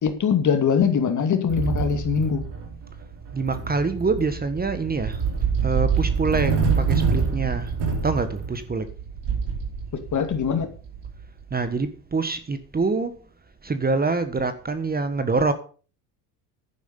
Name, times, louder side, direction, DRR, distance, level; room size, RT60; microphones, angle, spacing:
voice 1, 0.0-2.4 10.1-10.7, left 6 dB, 40° left, 8 dB, 2.4 m, -22 dB
sound 1, 1.5-11.7, right 5 dB, 60° right, 4.7 m, -26 dB
voice 2, 3.3-5.3 5.6-7.7 8.0-8.9 11.5-13.1 13.6-15.5, right 4 dB, 20° right, 11 dB, 1.4 m, -25 dB
11.0 x 9.2 x 5.3 m, 0.38 s
hypercardioid pair, 80°, 45 cm